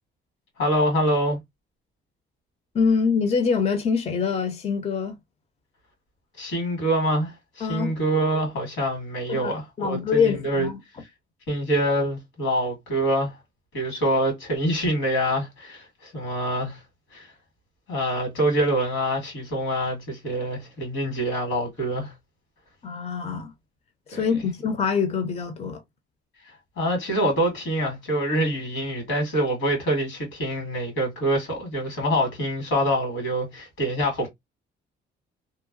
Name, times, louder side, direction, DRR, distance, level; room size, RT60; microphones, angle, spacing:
voice 1, 0.6-1.4 6.4-10.7 11.5-13.3 13.7-16.8 17.1-17.3 17.9-22.1 24.1-24.4 26.8-34.3, right 1 dB, 90° left, 1.8 m, -25 dB
voice 2, 2.7-5.1 7.6-7.9 9.3-10.8 22.8-23.5 24.1-25.8, left 6 dB, 35° left, 0.6 m, -24 dB
2.9 x 2.1 x 2.4 m
cardioid pair, 90°, 20 cm